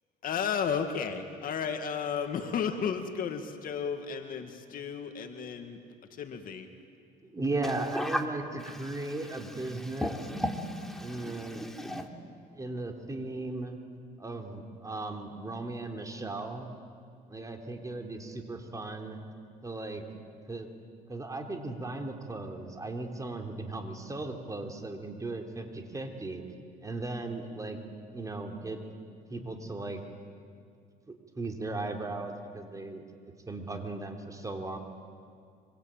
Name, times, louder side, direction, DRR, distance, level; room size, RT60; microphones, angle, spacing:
voice 1, 0.2-5.8 6.2-6.7, left 7 dB, 55° left, 6 dB, 2.1 m, -33 dB
voice 2, 7.2-10.2 11.0-11.7 12.5-13.8 14.2-16.7 17.3-19.2 19.6-20.0 20.5-20.7 21.1-26.4 26.8-27.8 28.1-28.8 29.3-30.0 31.1-33.0 33.5-34.8, right 2 dB, 20° right, 3 dB, 3.4 m, -37 dB
voice 3, 8.6-12.1, equal, ahead, 2 dB, 3.1 m, -36 dB
25.5 x 25.5 x 9.1 m, 2.2 s
cardioid pair, 110°, 17 cm